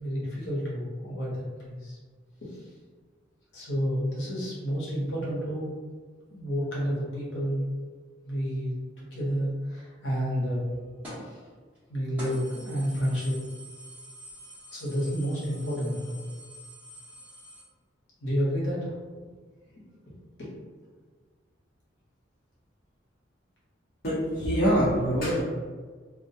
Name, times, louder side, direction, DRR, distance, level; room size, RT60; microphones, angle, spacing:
voice 1, 0.0-2.0 2.4-2.7 3.5-5.8 6.3-7.6 8.2-10.6 11.1-11.4 11.9-13.4 14.7-16.2 18.2-18.9 20.4-20.5, equal, 85° left, -6 dB, 0.9 m, -30 dB
sound 1, 11.0-11.3 11.7-11.8 12.2-17.6, equal, 10° right, 0.9 m, -46 dB
voice 2, 24.0-25.4, equal, 55° left, -12 dB, 0.9 m, -24 dB
2.3 x 2.1 x 2.7 m, 1.5 s
head